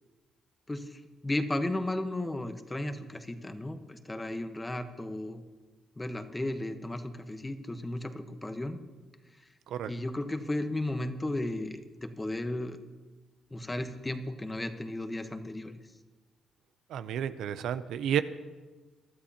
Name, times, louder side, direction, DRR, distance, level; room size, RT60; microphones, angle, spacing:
voice 1, 0.7-5.4 6.0-8.8 9.9-12.8 13.5-15.8, left 1 dB, 15° left, 8 dB, 1.1 m, -34 dB
voice 2, 16.9-18.2, right 9 dB, 80° right, 12 dB, 0.6 m, -31 dB
23.0 x 12.5 x 2.9 m, 1.3 s
cardioid pair, 90°, 0 cm